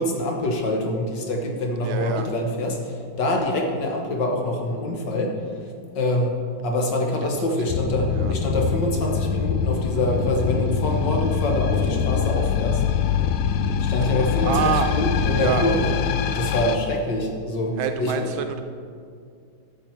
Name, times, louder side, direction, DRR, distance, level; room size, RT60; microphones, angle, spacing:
voice 1, 0.0-12.8 13.8-15.9 16.3-18.3, left 1 dB, 60° left, 1 dB, 1.6 m, -25 dB
voice 2, 1.8-2.3 7.2-7.3 8.1-8.3 14.4-14.9 15.3-15.6 17.8-18.6, right 8 dB, 75° right, 7 dB, 1.2 m, -26 dB
sound 1, 7.7-16.8, left 7 dB, 75° left, 1.4 m, -24 dB
12.5 x 7.3 x 4.5 m, 2.3 s
omnidirectional pair, 2.4 m